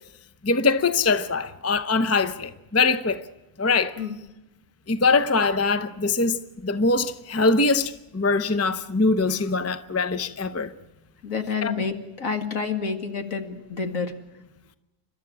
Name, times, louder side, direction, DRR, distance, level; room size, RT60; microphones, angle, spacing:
voice 1, 0.4-3.2 3.6-4.0 4.9-10.7 11.6-11.7, left 3 dB, 20° left, 0.4 m, -23 dB
voice 2, 11.2-14.1, left 5 dB, 60° left, 2.3 m, -29 dB
29.5 x 13.0 x 9.8 m
omnidirectional pair, 1.6 m